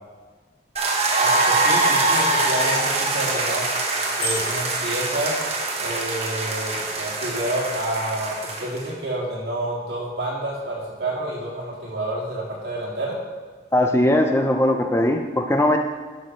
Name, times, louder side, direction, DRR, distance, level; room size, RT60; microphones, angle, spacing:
sound 1, 0.8-8.9, right 2 dB, 35° right, 1.4 m, -23 dB
voice 1, 1.2-3.6 4.1-5.3 5.8-13.1, right 1 dB, 60° right, -5 dB, 3.2 m, -29 dB
Bicycle bell, 4.2-4.8, equal, 55° left, 2.7 m, -30 dB
voice 2, 13.7-15.8, left 1 dB, 15° left, 4 dB, 0.5 m, -19 dB
11.5 x 6.5 x 5.1 m, 1.5 s
head